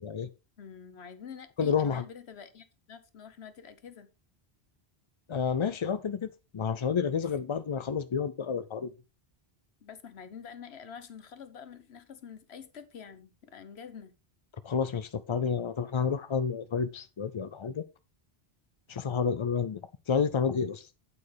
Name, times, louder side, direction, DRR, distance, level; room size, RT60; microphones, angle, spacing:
voice 1, 0.6-4.1 9.8-14.1, left 7 dB, 80° left, 1.3 m, -47 dB
voice 2, 1.6-2.0 5.3-6.3 6.5-8.9 14.6-17.9 18.9-19.8 20.1-20.9, left 6 dB, 50° left, 0.3 m, -30 dB
8.7 x 8.3 x 3.4 m
omnidirectional pair, 1.1 m